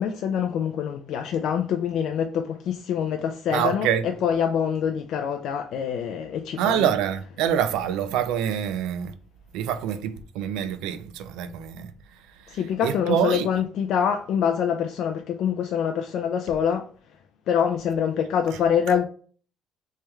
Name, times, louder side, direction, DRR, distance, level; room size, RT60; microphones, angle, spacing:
voice 1, 0.0-6.9 12.5-16.9 17.5-19.0, left 8 dB, 50° left, 0.3 m, -25 dB
voice 2, 3.5-4.1 6.6-9.1 9.5-11.9 12.5-13.5, right 9 dB, 85° right, 0.4 m, -26 dB
3.4 x 3.2 x 3.1 m
cardioid pair, 175°, 0 cm